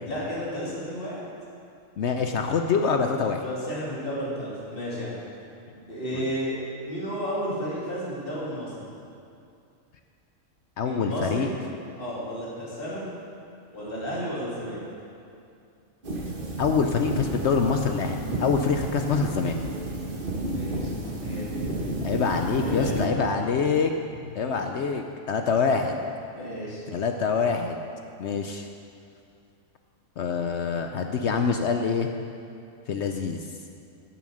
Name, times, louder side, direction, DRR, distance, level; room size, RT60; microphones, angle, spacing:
voice 1, 0.1-1.2 3.4-5.1 5.9-6.6 6.8-8.9 10.8-11.5 12.0-13.1 13.7-14.8 20.5-21.9 22.5-23.0 24.1-24.2 26.3-26.8, equal, 40° left, -7 dB, 2.7 m, -32 dB
voice 2, 2.0-3.4 6.1-6.2 10.8-11.5 16.6-19.6 22.0-23.9 24.3-26.0 26.9-27.8 28.2-28.7 30.2-32.1 32.9-33.5, left 5 dB, 65° left, 5 dB, 0.9 m, -25 dB
sound 1, 16.0-23.1, right 1 dB, 40° right, 1.4 m, -31 dB
15.0 x 7.1 x 6.3 m, 2.5 s
omnidirectional pair, 1.4 m